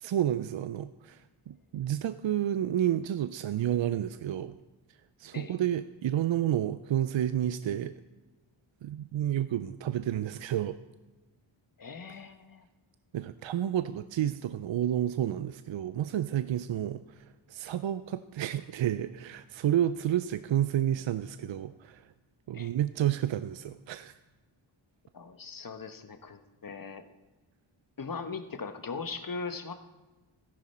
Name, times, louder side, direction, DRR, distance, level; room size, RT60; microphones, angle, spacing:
voice 1, 0.0-4.5 5.2-7.9 8.8-10.8 13.1-22.0 22.5-24.1, right 11 dB, 65° right, 12 dB, 0.6 m, -30 dB
voice 2, 11.8-12.6 22.5-22.7 25.1-27.0 28.0-29.7, left 4 dB, 45° left, 9 dB, 1.2 m, -39 dB
14.0 x 11.5 x 4.3 m, 1.1 s
cardioid pair, 65°, 49 cm